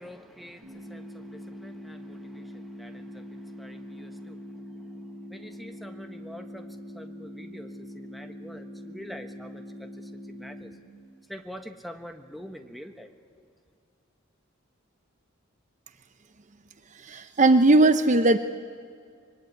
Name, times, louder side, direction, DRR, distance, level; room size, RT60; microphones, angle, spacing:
voice 1, 0.0-10.7 11.3-13.1 13.4-13.5, equal, ahead, 6 dB, 1.4 m, -45 dB
sound 1, 0.6-10.6, left 1 dB, 90° right, 7.9 m, -43 dB
voice 2, 17.0-18.4, right 2 dB, 40° right, 10 dB, 0.7 m, -18 dB
25.0 x 22.5 x 9.6 m, 2.2 s
head